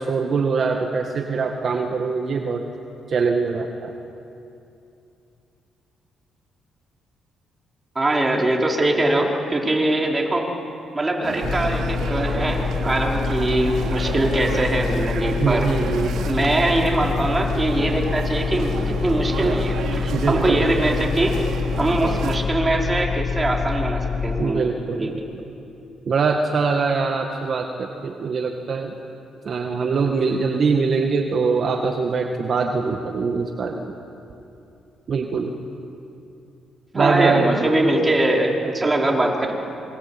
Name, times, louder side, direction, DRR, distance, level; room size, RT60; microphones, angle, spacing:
voice 1, 0.0-2.6 3.1-3.9 15.4-16.2 20.1-20.7 24.4-25.2 26.1-29.0 29.4-34.0 35.1-35.5 36.9-37.5, right 4 dB, 50° right, 3 dB, 2.0 m, -23 dB
voice 2, 8.0-10.5 10.9-15.7 16.3-21.4 21.8-24.7 24.9-25.1 36.9-39.6, right 1 dB, 20° right, 0 dB, 5.1 m, -22 dB
sound 1, 11.2-22.4, right 5 dB, 75° right, 3.0 m, -31 dB
sound 2, 11.4-24.5, left 5 dB, 40° left, 1.0 m, -26 dB
27.0 x 24.0 x 8.9 m, 2.7 s
cardioid pair, 90°, 0 cm